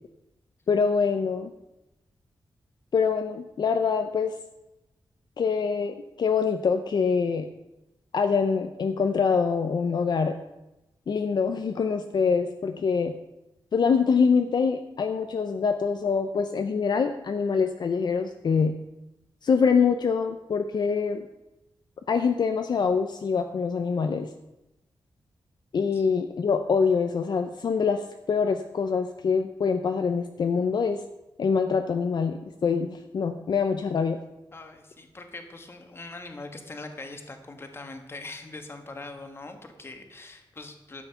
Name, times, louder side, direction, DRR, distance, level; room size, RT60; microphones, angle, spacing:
voice 1, 0.7-1.5 2.9-4.3 5.4-7.5 8.1-10.4 11.1-13.2 13.7-18.8 19.4-21.3 22.1-24.3 25.7-31.0 31.4-34.2, left 5 dB, 55° left, 7 dB, 0.6 m, -25 dB
voice 2, 34.5-41.0, left 2 dB, 30° left, 6 dB, 1.3 m, -42 dB
12.5 x 8.3 x 5.7 m, 0.95 s
wide cardioid pair, 180°, 9 cm